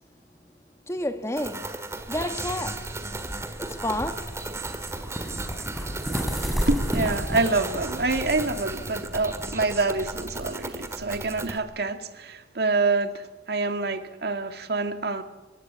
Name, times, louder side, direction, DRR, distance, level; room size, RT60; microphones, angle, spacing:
voice 1, 0.9-1.8 2.1-4.1, left 1 dB, 15° left, 1.5 m, -31 dB
sound 1, 1.4-11.6, right 2 dB, 15° right, 1.8 m, -36 dB
sound 2, 2.0-11.4, equal, ahead, 4.0 m, -34 dB
voice 2, 6.7-15.2, right 3 dB, 60° right, 1.9 m, -26 dB
25.0 x 19.5 x 8.6 m
head